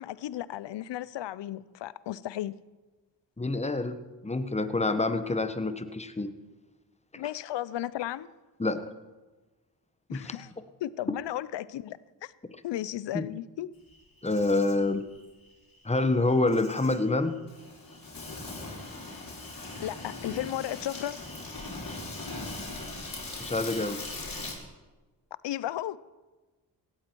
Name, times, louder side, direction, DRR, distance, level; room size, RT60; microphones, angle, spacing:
voice 1, 0.0-2.6 7.2-8.3 10.1-10.5 10.8-12.3 12.6-13.7 19.8-21.2 25.4-26.0, left 13 dB, 75° left, 0.7 m, -34 dB
voice 2, 3.4-6.3 8.6-8.9 10.1-10.3 13.1-13.2 14.2-15.0 15.8-17.3 23.4-24.0, left 2 dB, 15° left, 1.3 m, -27 dB
Insect, 13.9-24.5, left 2 dB, 50° left, 5.2 m, -40 dB
17.0 x 13.0 x 4.6 m
supercardioid pair, 50°, 44 cm